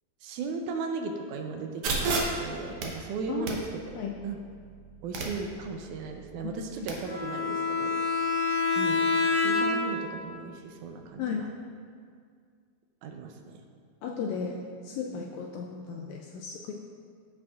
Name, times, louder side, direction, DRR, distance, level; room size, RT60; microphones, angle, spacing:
voice 1, 0.2-3.6 3.9-4.4 5.0-7.9 8.8-11.5 13.0-13.6 15.2-15.3, right 4 dB, 85° right, 3 dB, 2.1 m, -37 dB
sound 1, 1.8-6.9, right 3 dB, 65° right, 1.6 m, -35 dB
Bowed string instrument, 7.0-10.0, left 4 dB, 10° left, 0.7 m, -27 dB
voice 2, 14.0-16.7, left 6 dB, 80° left, 0 dB, 1.6 m, -35 dB
14.5 x 5.0 x 2.4 m, 2.1 s
omnidirectional pair, 3.6 m